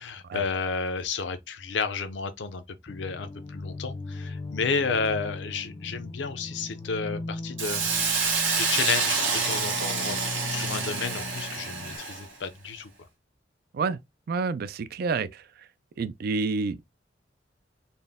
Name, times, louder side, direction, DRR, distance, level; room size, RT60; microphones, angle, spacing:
voice 1, 0.0-7.9 8.6-12.9, left 5 dB, 70° left, 0.6 m, -31 dB
sound 1, 2.9-12.0, left 2 dB, 25° left, 0.4 m, -38 dB
Hiss, 7.6-12.3, right 5 dB, 90° right, 1.3 m, -28 dB
voice 2, 14.3-15.4 16.0-16.8, right 4 dB, 50° right, 0.3 m, -28 dB
4.2 x 2.1 x 3.5 m
head